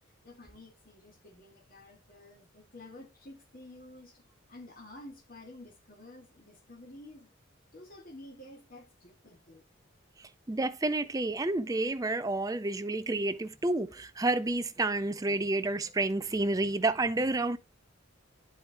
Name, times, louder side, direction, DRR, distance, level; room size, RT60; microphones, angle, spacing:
voice 1, 0.2-4.2 4.5-7.3 7.7-9.6, left 1 dB, 45° left, 2.1 m, -51 dB
voice 2, 10.2-17.6, right 2 dB, 15° right, 0.4 m, -30 dB
10.5 x 4.9 x 2.9 m
head